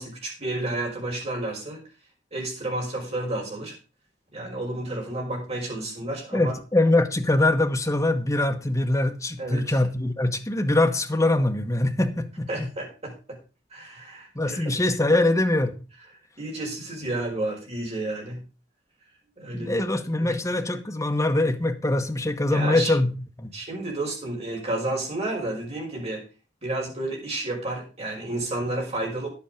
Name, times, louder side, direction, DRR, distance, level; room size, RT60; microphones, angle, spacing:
voice 1, 0.0-1.8 2.3-3.7 4.3-6.5 9.4-9.8 12.5-13.4 13.7-14.7 15.1-15.2 16.4-18.4 19.4-19.8 20.2-20.4 22.5-22.9 23.5-26.2 26.6-29.3, right 2 dB, 35° right, 5.6 m, -31 dB
voice 2, 6.3-12.7 14.3-15.8 19.5-23.1 23.4-23.5, left 2 dB, 20° left, 1.2 m, -23 dB
10.5 x 8.4 x 5.1 m
head